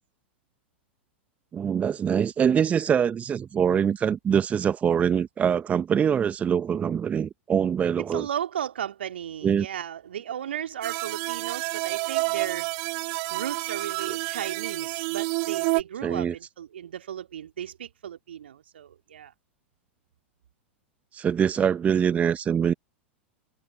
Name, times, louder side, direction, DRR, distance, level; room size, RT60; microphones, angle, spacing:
voice 1, 1.5-8.3 9.4-9.7 14.1-14.2 16.0-16.3 21.1-22.7, right 8 dB, 20° right, 1.0 m, -24 dB
voice 2, 8.0-12.7 13.3-19.3, right 9 dB, 65° right, 2.8 m, -35 dB
sound 1, 10.8-15.8, right 40 dB or more, 45° right, 4.6 m, -29 dB
figure-of-eight pair, 90°, 6 cm